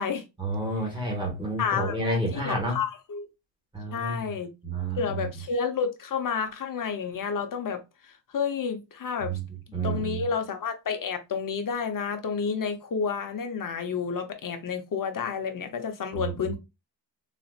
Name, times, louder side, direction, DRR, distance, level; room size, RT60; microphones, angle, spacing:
voice 1, 0.4-2.8 3.7-4.3 4.6-5.3 9.2-9.4 9.7-10.2 16.1-16.2, right 2 dB, 10° right, 1.7 m, -30 dB
voice 2, 1.6-3.3 3.9-4.5 5.0-9.4 9.8-16.6, left 6 dB, 50° left, 0.8 m, -30 dB
4.0 x 2.9 x 2.3 m
wide cardioid pair, 130°, 42 cm